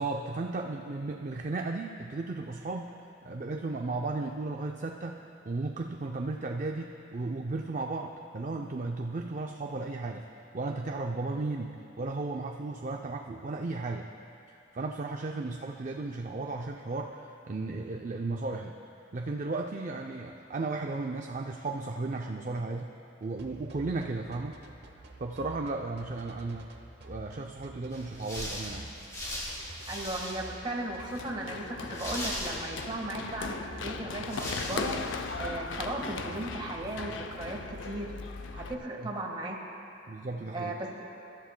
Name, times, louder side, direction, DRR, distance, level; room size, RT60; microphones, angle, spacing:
voice 1, 0.0-2.9 3.2-10.2 10.5-14.1 14.5-18.7 19.1-22.9 23.2-24.6 25.2-26.7 27.0-29.0 39.0-39.1 40.1-40.7, right 3 dB, 40° right, 3 dB, 0.5 m, -35 dB
sound 1, 23.4-36.6, right 1 dB, 60° right, 1.1 m, -49 dB
sound 2, 27.9-30.7 31.0-31.1 31.9-33.1 33.8-33.9 34.3-35.4, equal, 20° left, 1.9 m, -39 dB
voice 2, 29.9-38.1 38.5-39.6 40.5-40.9, right 1 dB, 25° right, -1 dB, 1.5 m, -36 dB
Run, 31.0-38.7, left 4 dB, 80° left, 0.5 m, -38 dB
24.5 x 13.0 x 2.2 m, 2.7 s
head